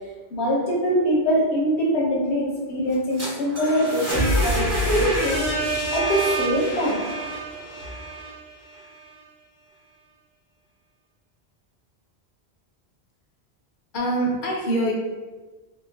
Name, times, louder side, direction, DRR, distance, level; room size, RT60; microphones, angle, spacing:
voice 1, 0.3-5.5 5.9-7.0, equal, 80° left, -4 dB, 1.1 m, -23 dB
sound 1, 2.9-8.8, right 1 dB, 15° right, 0.7 m, -27 dB
voice 2, 13.9-14.9, right 1 dB, 55° left, -1 dB, 0.7 m, -24 dB
3.1 x 2.1 x 3.3 m, 1.3 s
omnidirectional pair, 1.1 m